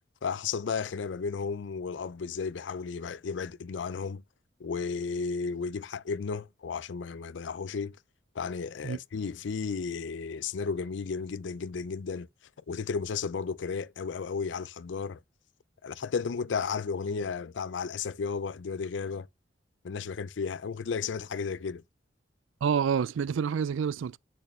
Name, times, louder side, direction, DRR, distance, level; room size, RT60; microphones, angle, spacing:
voice 1, 0.2-4.2 4.6-8.0 8.4-12.3 12.7-15.2 15.8-19.3 19.8-21.8, left 5 dB, 70° left, 0.4 m, -33 dB
voice 2, 22.6-24.2, right 7 dB, 85° right, 0.4 m, -28 dB
8.2 x 6.6 x 3.2 m
head